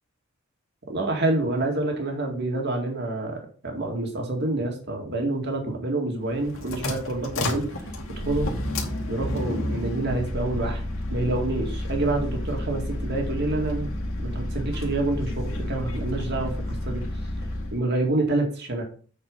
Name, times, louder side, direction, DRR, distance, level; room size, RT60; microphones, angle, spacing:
voice 1, 0.9-3.4 3.6-7.7 8.2-8.5 9.1-10.8 11.1-13.9 14.2-17.0 17.7-18.8, right 2 dB, 55° right, 1 dB, 2.1 m, -27 dB
sound 1, 6.2-17.8, left 1 dB, 85° left, 2.2 m, -30 dB
8.2 x 4.8 x 5.3 m, 0.42 s
head